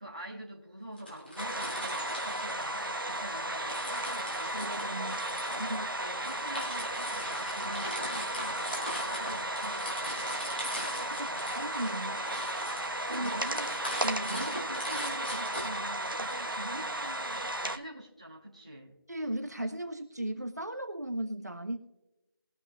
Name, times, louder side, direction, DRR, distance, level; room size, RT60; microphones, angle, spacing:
voice 1, 0.0-4.9 5.5-8.7 9.0-10.4 11.2-11.5 13.1-13.8 14.3-19.0, right 1 dB, 15° right, -6 dB, 1.4 m, -45 dB
sound 1, 1.0-3.2 3.6-16.3, equal, 25° left, 3.0 m, -41 dB
sound 2, 1.4-17.8, right 1 dB, 65° right, 1.3 m, -35 dB
voice 2, 4.5-5.2 5.5-5.9 11.2-12.2 13.1-13.3 14.0-14.5 19.1-21.8, right 1 dB, 45° right, 5 dB, 1.4 m, -36 dB
22.0 x 7.8 x 2.4 m, 1.1 s
figure-of-eight pair, 180°, 12 cm